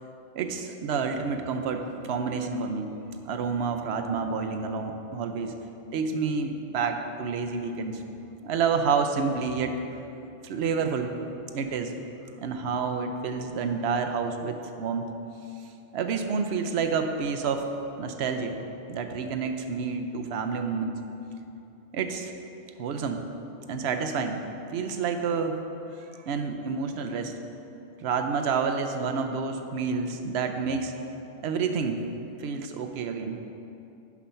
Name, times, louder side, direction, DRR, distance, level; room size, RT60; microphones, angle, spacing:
voice 1, 0.4-2.9 3.3-5.5 5.9-8.0 8.4-9.8 10.4-11.1 11.5-11.9 12.4-15.1 15.9-17.7 18.0-18.6 18.9-20.9 21.9-22.3 22.8-23.2 23.7-24.4 24.7-25.6 26.1-27.3 28.0-30.9 31.4-32.0 32.4-33.4, right 5 dB, 80° right, 5 dB, 0.9 m, -29 dB
6.1 x 5.8 x 5.5 m, 2.8 s
omnidirectional pair, 1.1 m